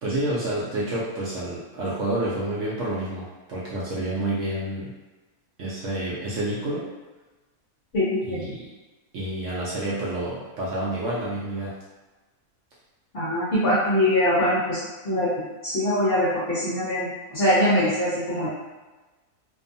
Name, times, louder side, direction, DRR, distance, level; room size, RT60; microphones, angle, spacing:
voice 1, 0.0-4.9 5.6-6.9 8.2-8.7 9.1-11.7, right 1 dB, 65° right, -7 dB, 0.8 m, -29 dB
voice 2, 7.9-8.4 13.1-15.3 15.6-18.5, left 1 dB, 55° left, -9 dB, 0.7 m, -23 dB
2.5 x 2.3 x 2.6 m, 1.2 s
omnidirectional pair, 1.7 m